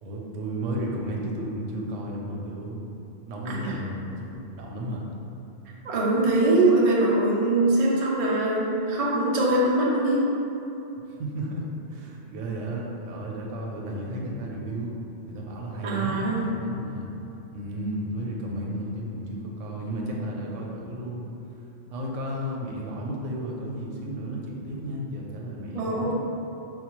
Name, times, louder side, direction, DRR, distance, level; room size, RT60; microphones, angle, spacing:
voice 1, 0.0-4.3 4.6-5.1 11.2-15.0 15.3-17.1 17.5-21.3 21.9-26.1, right 1 dB, 90° right, -2 dB, 0.9 m, -33 dB
voice 2, 3.5-3.8 5.8-10.3 15.8-16.4 25.7-26.2, right 2 dB, 45° right, -5 dB, 0.4 m, -22 dB
4.4 x 2.1 x 3.0 m, 2.9 s
omnidirectional pair, 1.2 m